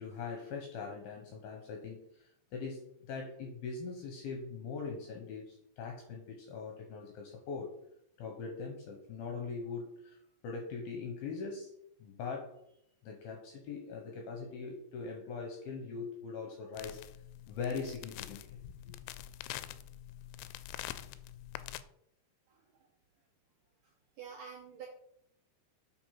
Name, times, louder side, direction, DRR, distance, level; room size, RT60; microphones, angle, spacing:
voice 1, 0.0-7.7 8.2-10.2 10.4-11.7 12.0-12.6 13.0-17.0 17.5-19.0, left 5 dB, 70° left, 2 dB, 2.4 m, -41 dB
sound 1, 16.8-21.8, left 13 dB, 90° left, 3.0 m, -45 dB
voice 2, 22.5-22.8 23.8-24.9, right 7 dB, 65° right, -4 dB, 2.2 m, -49 dB
7.9 x 4.9 x 5.7 m, 0.72 s
omnidirectional pair, 5.5 m